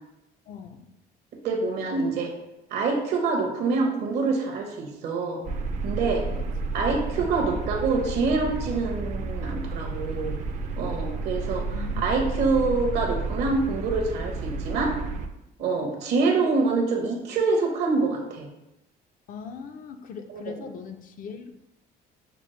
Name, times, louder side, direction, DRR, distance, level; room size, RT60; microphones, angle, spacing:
voice 1, 0.5-0.9 7.1-7.3 11.7-12.1 15.8-15.9 19.3-21.5, left 6 dB, 55° left, 6 dB, 0.5 m, -40 dB
voice 2, 1.4-2.3 2.7-5.4 5.8-6.2 6.7-10.3 10.8-14.9 15.6-18.5 20.3-20.5, right 3 dB, 75° right, 2 dB, 0.9 m, -26 dB
sound 1, 5.4-15.3, right 3 dB, 45° right, 0.4 m, -31 dB
5.9 x 2.0 x 3.1 m, 0.89 s
cardioid pair, 110°, 17 cm